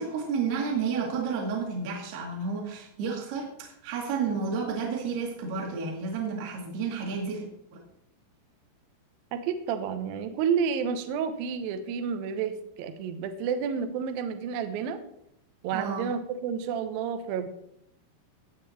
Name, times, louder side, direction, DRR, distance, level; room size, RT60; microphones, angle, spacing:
voice 1, 0.0-7.5 15.7-16.1, right 5 dB, 60° right, -1 dB, 3.3 m, -31 dB
voice 2, 9.3-15.0 15.6-17.5, right 7 dB, 85° right, 8 dB, 2.0 m, -30 dB
16.0 x 7.7 x 4.2 m, 0.76 s
omnidirectional pair, 5.8 m